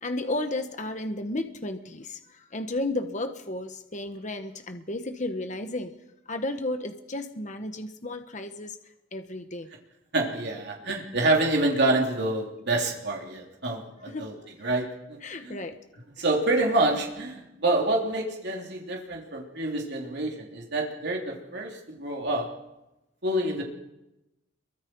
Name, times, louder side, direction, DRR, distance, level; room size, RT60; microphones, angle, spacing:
voice 1, 0.0-5.9 6.3-8.8 9.1-9.7 10.8-11.0 14.1-14.3 15.2-15.8 16.2-16.3, left 2 dB, 40° left, 7 dB, 1.3 m, -33 dB
voice 2, 10.1-14.3 14.6-15.6 16.2-22.5 23.2-23.6, right 2 dB, 55° right, 0 dB, 3.6 m, -27 dB
27.0 x 23.5 x 4.8 m, 0.95 s
head